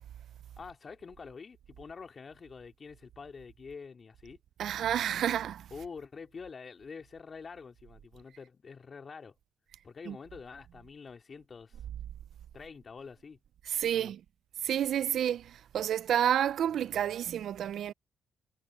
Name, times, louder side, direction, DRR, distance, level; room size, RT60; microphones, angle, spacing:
voice 1, 0.6-4.4 5.7-9.3 9.8-11.8 12.5-13.4 13.9-14.1, left 5 dB, 40° left, 2.7 m, -46 dB
voice 2, 4.6-5.7 10.1-10.2 13.7-14.2 14.6-17.9, right 10 dB, 70° right, 0.4 m, -30 dB
cardioid pair, 90°, 0 cm